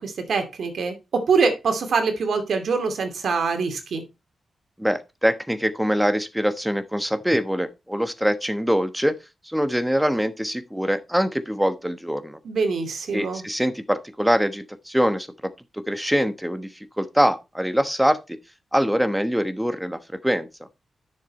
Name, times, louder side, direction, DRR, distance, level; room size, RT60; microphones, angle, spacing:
voice 1, 0.0-4.0 12.4-13.4, right 5 dB, 75° right, 2.6 m, -24 dB
voice 2, 4.8-9.1 9.4-12.4 13.1-15.3 15.7-18.4 18.7-20.5, equal, 5° right, 1.2 m, -23 dB
10.0 x 6.8 x 4.2 m
wide cardioid pair, 110°, 0 cm